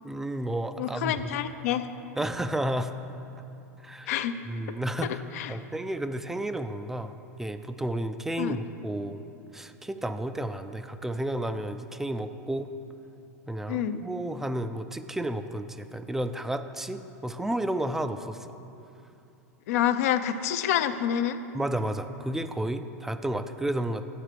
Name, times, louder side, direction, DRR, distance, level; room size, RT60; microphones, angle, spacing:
voice 1, 0.0-1.4 2.2-2.9 3.8-4.1 4.5-5.2 5.5-7.1 7.4-9.2 9.5-12.7 13.5-18.6 21.5-24.0, right 1 dB, 5° right, 9 dB, 0.3 m, -32 dB
voice 2, 0.8-1.9 4.1-4.3 5.0-5.6 8.4-8.6 13.7-14.0 19.7-21.4, left 10 dB, 65° left, 10 dB, 0.5 m, -27 dB
9.0 x 4.6 x 6.7 m, 2.8 s
hypercardioid pair, 120°, 9 cm